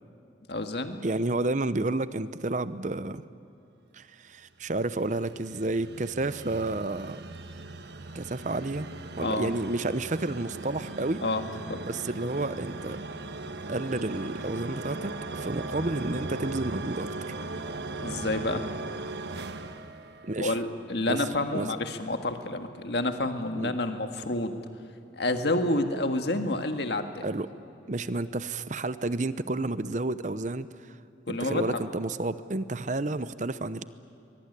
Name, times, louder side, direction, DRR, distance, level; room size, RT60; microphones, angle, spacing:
voice 1, 0.5-1.0 9.2-9.5 11.2-11.4 11.7-11.8 18.0-18.6 20.4-24.5 25.1-27.3 31.3-31.8, left 2 dB, 60° left, 6 dB, 1.8 m, -29 dB
voice 2, 1.0-3.2 3.9-7.2 8.1-8.9 9.2-11.2 11.8-13.0 13.7-17.3 20.2-20.6 21.1-21.2 21.5-21.7 23.6-23.8 27.2-27.5 27.9-31.0 31.3-33.8, right 2 dB, 40° right, 14 dB, 0.7 m, -31 dB
sound 1, 4.7-20.8, right 2 dB, 65° right, 1.2 m, -38 dB
23.0 x 22.0 x 9.9 m, 2.7 s
head